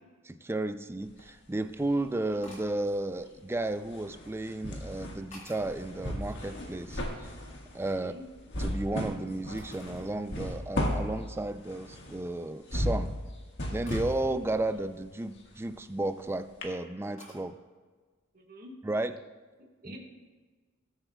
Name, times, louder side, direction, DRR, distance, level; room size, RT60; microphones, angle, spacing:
voice 1, 0.3-7.3 7.7-8.1 8.6-13.1 13.7-17.6 18.8-19.2 19.8-20.0, right 2 dB, 10° right, 10 dB, 0.3 m, -33 dB
sound 1, 1.0-2.1 2.4-16.2 16.6-16.7, equal, 55° left, 1.6 m, -36 dB
sound 2, 2.4-2.8 3.6-4.4 5.0-5.8 6.2-7.3 7.6-8.9 9.6-10.1 10.6-10.7 11.3-11.5 11.9-12.3 13.9-14.1 15.8-16.3 17.2-17.5, left 1 dB, 35° left, 3.6 m, -54 dB
voice 2, 7.8-8.3 14.2-14.4 18.3-18.8 19.8-20.0, left 1 dB, 45° right, -1 dB, 1.6 m, -47 dB
19.5 x 8.0 x 2.3 m, 1.4 s
head